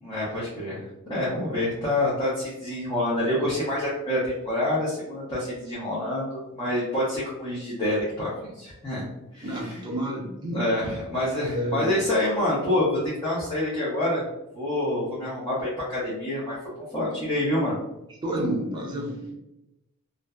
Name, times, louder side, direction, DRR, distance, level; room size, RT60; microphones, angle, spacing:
voice 1, 0.0-9.0 9.3-9.8 10.5-14.2 14.5-17.7, left 1 dB, 20° left, -9 dB, 0.6 m, -27 dB
voice 2, 9.4-10.6 11.4-11.9 18.2-19.3, right 1 dB, 20° right, -3 dB, 0.6 m, -29 dB
2.6 x 2.1 x 2.3 m, 0.90 s
head